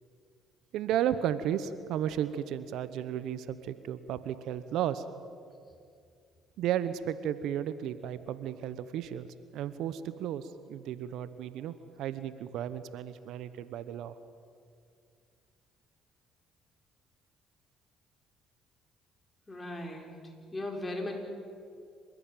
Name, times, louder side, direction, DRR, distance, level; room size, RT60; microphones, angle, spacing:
voice 1, 0.7-5.0 6.6-9.3 9.5-14.1, right 10 dB, 70° right, 14 dB, 1.0 m, -34 dB
voice 2, 19.5-20.1 20.5-21.2, left 1 dB, 20° left, 2 dB, 5.9 m, -37 dB
28.0 x 15.5 x 9.1 m, 2.3 s
hypercardioid pair, 60°, 0 cm